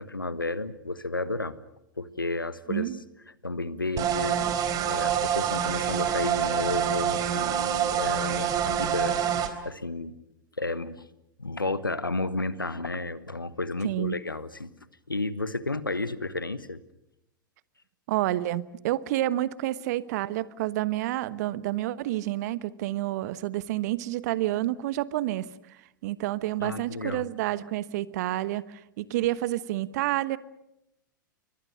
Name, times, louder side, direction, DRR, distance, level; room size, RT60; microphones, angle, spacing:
voice 1, 0.0-1.6 2.0-2.9 3.4-4.5 4.9-9.2 9.6-10.2 10.6-11.0 11.4-14.7 15.1-16.8 26.6-27.3, left 2 dB, 90° left, 15 dB, 1.3 m, -32 dB
voice 2, 2.7-3.0 13.8-14.2 18.1-30.4, right 15 dB, 55° right, 17 dB, 1.1 m, -29 dB
sound 1, 4.0-9.5, right 9 dB, 35° right, 3.6 m, -26 dB
28.0 x 23.5 x 6.5 m, 0.86 s
figure-of-eight pair, 95°, 11 cm